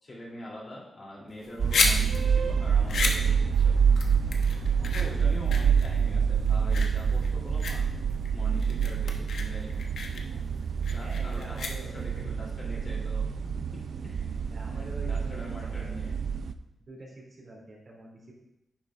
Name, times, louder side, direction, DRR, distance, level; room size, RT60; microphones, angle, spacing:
voice 1, 0.0-3.9 4.9-7.9 8.3-9.8 10.1-10.2 10.9-11.6 11.9-13.2 14.0-14.3 14.6-16.2, left 1 dB, 40° left, -4 dB, 3.0 m, -43 dB
sound 1, 1.3-12.2, left 4 dB, 75° left, 1.0 m, -33 dB
sound 2, 1.6-16.5, right 6 dB, 65° right, 0.4 m, -27 dB
voice 2, 4.7-5.3 10.9-11.9 14.5-16.0 16.8-18.3, right 1 dB, 45° right, -4 dB, 2.9 m, -46 dB
10.0 x 7.7 x 2.5 m, 0.87 s
cardioid pair, 105°, 0 cm